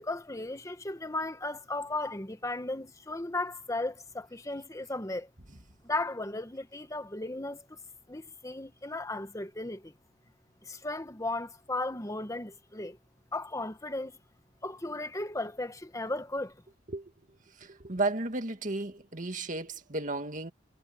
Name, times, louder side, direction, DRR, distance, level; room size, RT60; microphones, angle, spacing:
voice 1, 0.0-5.3 5.8-7.6 8.1-9.9 10.6-13.0 13.3-14.1 14.6-16.5, left 2 dB, 20° left, 1.4 m, -35 dB
voice 2, 17.6-20.5, right 2 dB, 45° right, 2.1 m, -33 dB
head